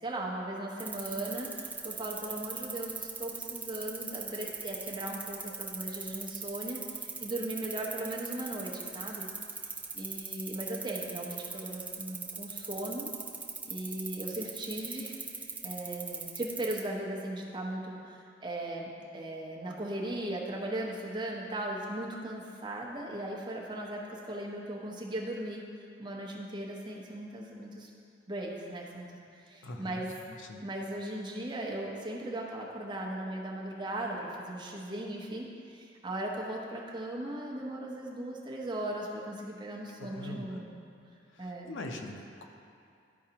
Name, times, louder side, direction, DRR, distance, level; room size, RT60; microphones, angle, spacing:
voice 1, 0.0-9.3 9.9-13.1 13.7-25.7 26.0-27.9 28.3-29.1 29.3-30.1 30.6-40.9 41.4-41.7, right 1 dB, 25° right, -2 dB, 0.8 m, -38 dB
sound 1, 0.8-16.9, right 4 dB, 10° right, 0.4 m, -39 dB
voice 2, 29.6-30.0 30.5-30.6 40.0-40.6 41.3-42.4, left 1 dB, 90° left, 3 dB, 0.7 m, -42 dB
12.0 x 4.6 x 2.9 m, 2.4 s
head